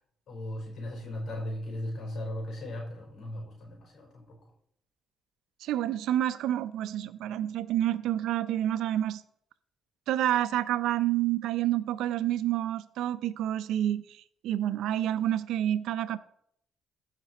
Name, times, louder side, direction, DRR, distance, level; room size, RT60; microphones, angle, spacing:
voice 1, 0.3-4.4, left 1 dB, 60° left, 4.5 m, -37 dB
voice 2, 5.6-9.2 10.1-14.0 14.4-16.2, right 12 dB, 85° right, 0.5 m, -28 dB
15.0 x 6.0 x 4.2 m
cardioid pair, 90°, 0 cm